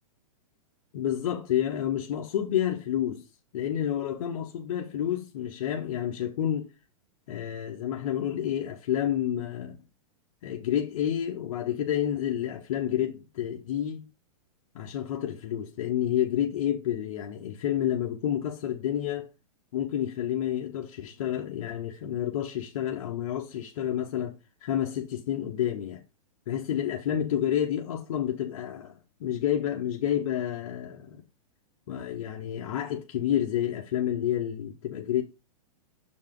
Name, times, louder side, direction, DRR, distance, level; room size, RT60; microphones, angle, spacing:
voice 1, 0.9-3.2 3.5-6.7 7.3-9.8 10.4-14.0 14.7-19.3 19.7-26.0 26.5-31.2 31.9-35.2, left 10 dB, 55° left, 1.0 m, -29 dB
6.7 x 4.2 x 3.8 m
hypercardioid pair, 165°, 19 cm